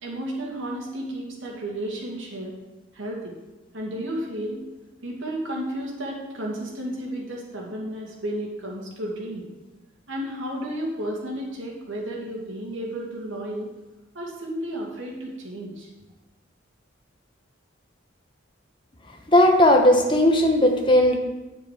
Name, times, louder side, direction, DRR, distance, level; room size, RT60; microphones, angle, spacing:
voice 1, 0.0-2.5 2.9-3.3 3.7-4.6 5.0-9.5 10.1-13.7 14.1-15.9, right 1 dB, 75° right, -3 dB, 2.5 m, -32 dB
voice 2, 19.3-21.2, left 1 dB, 25° left, 3 dB, 1.1 m, -17 dB
8.8 x 7.7 x 5.0 m, 1.1 s
head